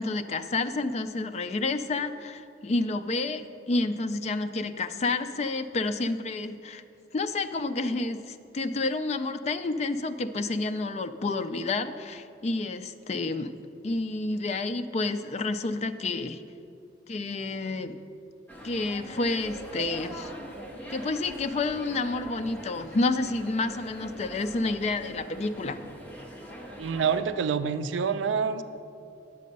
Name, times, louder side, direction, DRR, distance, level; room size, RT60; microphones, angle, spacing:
voice 1, 0.0-6.8 7.1-13.5 13.8-16.4 17.1-18.0 18.6-20.3 20.9-25.8, left 3 dB, 35° left, 9 dB, 0.4 m, -29 dB
sound 1, 18.5-27.2, equal, 10° left, 0.9 m, -42 dB
voice 2, 26.8-28.6, right 6 dB, 75° right, 11 dB, 0.4 m, -27 dB
9.3 x 7.5 x 5.3 m, 2.6 s
head